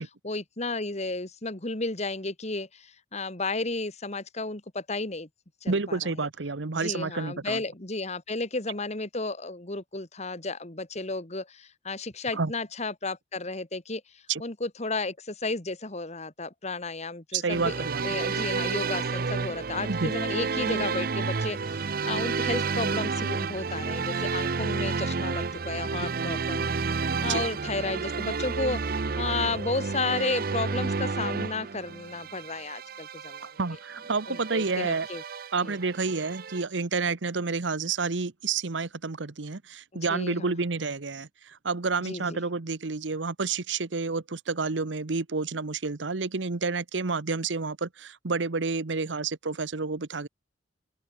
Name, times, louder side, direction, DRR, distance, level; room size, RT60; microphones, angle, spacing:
voice 1, 0.2-5.3 5.6-6.0 6.8-33.5 34.3-35.2 35.6-35.8 40.1-40.5 42.0-42.4, left 3 dB, 40° left, 2.1 m, -33 dB
voice 2, 5.7-7.6 12.3-12.5 14.3-14.4 17.3-18.2 19.9-20.1 27.3-27.4 33.6-35.1 35.5-50.3, right 4 dB, 85° right, 1.0 m, -29 dB
sound 1, 17.5-36.6, right 4 dB, 55° right, 0.7 m, -31 dB
open air
head